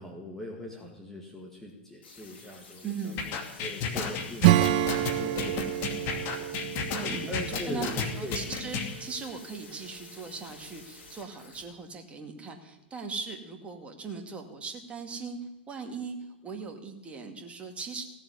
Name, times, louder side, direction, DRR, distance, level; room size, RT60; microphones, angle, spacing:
voice 1, 0.0-3.2 3.6-4.6 5.1-6.5 7.3-8.4, left 1 dB, 5° left, -1 dB, 2.0 m, -40 dB
sound 1, 2.0-11.6, left 4 dB, 60° left, 5.3 m, -51 dB
voice 2, 2.8-3.3 6.9-15.4 15.7-16.2 16.4-18.1, right 4 dB, 20° right, 4 dB, 2.2 m, -39 dB
sound 2, 3.2-8.9, left 6 dB, 40° left, 2.5 m, -32 dB
Acoustic guitar / Strum, 4.4-8.7, right 14 dB, 50° right, 0.7 m, -27 dB
16.5 x 7.2 x 9.6 m, 1.0 s
figure-of-eight pair, 100°, 6 cm